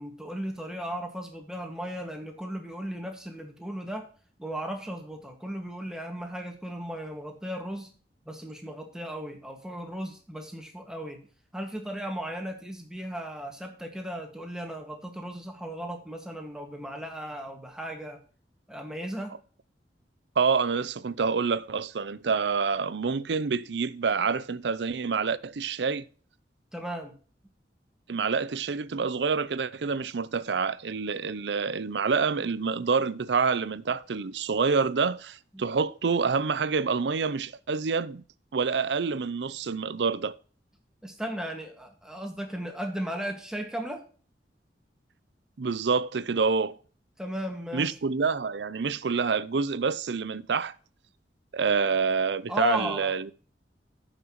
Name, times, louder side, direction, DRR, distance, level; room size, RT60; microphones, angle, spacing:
voice 1, 0.0-4.0 4.4-7.9 8.2-11.2 11.5-18.2 18.7-19.3 26.7-27.1 35.5-35.6 41.0-44.0 47.2-48.0 52.5-53.1, equal, 5° right, 1.8 m, -36 dB
voice 2, 20.4-26.1 28.1-38.2 38.5-40.3 45.6-46.7 47.7-50.8 51.5-53.3, right 5 dB, 80° right, 0.5 m, -27 dB
14.5 x 5.9 x 3.1 m
head